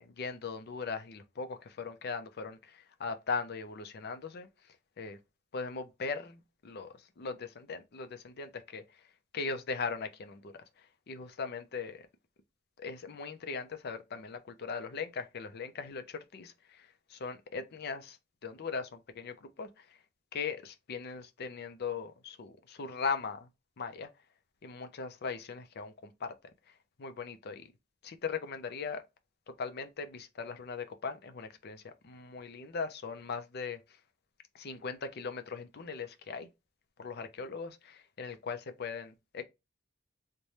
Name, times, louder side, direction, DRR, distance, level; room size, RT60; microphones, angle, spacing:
voice 1, 0.0-5.2 5.5-9.1 9.3-12.1 12.8-20.0 20.3-23.5 23.8-24.1 24.6-26.4 26.7-27.7 28.0-29.0 29.5-34.0 34.5-36.5 37.0-39.4, left 5 dB, 55° left, 0.5 m, -39 dB
3.2 x 2.2 x 4.0 m
head